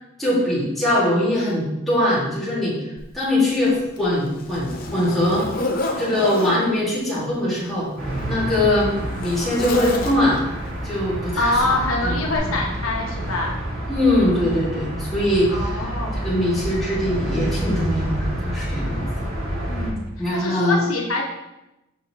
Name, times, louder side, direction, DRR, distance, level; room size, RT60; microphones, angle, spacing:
voice 1, 0.2-2.8 3.1-5.5 6.0-7.9 8.3-10.4 10.8-12.6 13.9-19.0 20.2-20.8, left 1 dB, ahead, -9 dB, 1.9 m, -22 dB
Zipper (clothing), 3.0-3.1 3.7-6.6 7.6-10.5 11.5-11.7 12.3-12.4, left 2 dB, 45° left, 0.7 m, -30 dB
sound 1, 8.0-19.9, equal, 80° right, 2.1 m, -28 dB
voice 2, 11.4-13.5 15.5-16.3 19.7-20.0 20.3-21.2, left 2 dB, 85° left, -1 dB, 1.1 m, -25 dB
6.3 x 5.4 x 2.9 m, 0.94 s
head